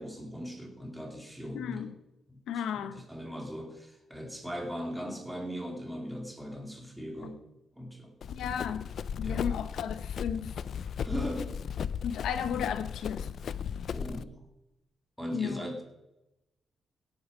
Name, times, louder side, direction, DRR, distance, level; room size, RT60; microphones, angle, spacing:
voice 1, 0.0-1.8 2.3-2.4 2.7-7.4 7.8-8.1 9.2-9.5 11.0-11.5 13.9-14.4 15.2-15.8, equal, 5° right, 2 dB, 2.5 m, -39 dB
voice 2, 1.5-2.0 2.5-3.0 7.2-7.3 8.3-8.9 9.2-10.6 12.0-13.3 15.3-15.7, left 8 dB, 85° left, 10 dB, 1.1 m, -34 dB
Run, 8.2-14.2, left 7 dB, 55° left, 0.5 m, -36 dB
17.0 x 8.8 x 5.2 m, 0.92 s
cardioid pair, 145°, 0 cm